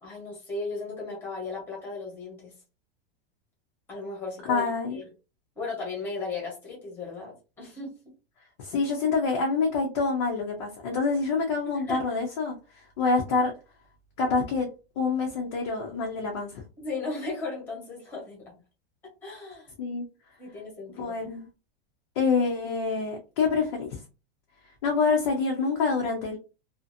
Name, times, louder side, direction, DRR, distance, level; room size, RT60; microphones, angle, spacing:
voice 1, 0.0-2.5 3.9-5.0 5.6-7.9 11.9-12.0 16.8-18.6 19.2-19.7 20.4-21.2, left 3 dB, 5° left, -2 dB, 0.8 m, -36 dB
voice 2, 4.5-5.0 8.6-13.5 14.2-14.7 15.0-16.6 19.8-20.0 21.0-21.5 22.2-24.0 24.8-26.4, left 4 dB, 30° left, 0 dB, 0.4 m, -26 dB
2.6 x 2.4 x 2.5 m, 0.30 s
supercardioid pair, 180°, 30 cm